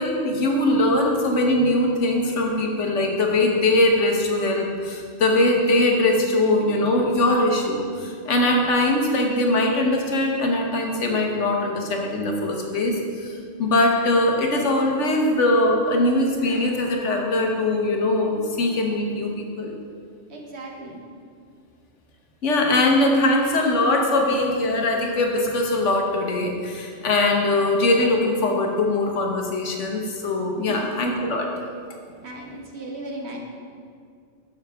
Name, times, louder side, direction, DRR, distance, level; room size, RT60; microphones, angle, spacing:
voice 1, 0.0-19.8 22.4-31.5, left 2 dB, 75° left, 1 dB, 1.4 m, -21 dB
voice 2, 20.3-21.0 30.7-31.0 32.2-33.4, right 1 dB, 65° right, 0 dB, 1.3 m, -36 dB
12.0 x 5.6 x 3.5 m, 2.2 s
omnidirectional pair, 1.2 m